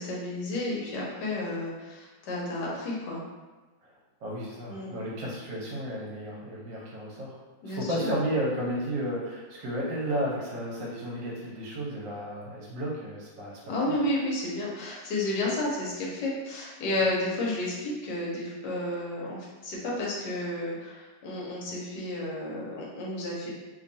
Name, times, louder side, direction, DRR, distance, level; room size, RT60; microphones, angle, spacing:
voice 1, 0.0-3.2 4.7-4.9 7.6-8.2 13.7-23.5, left 1 dB, 75° left, -4 dB, 1.3 m, -31 dB
voice 2, 4.2-7.4 7.6-13.9, right 1 dB, 80° right, -5 dB, 1.4 m, -33 dB
3.2 x 2.3 x 2.6 m, 1.2 s
omnidirectional pair, 1.9 m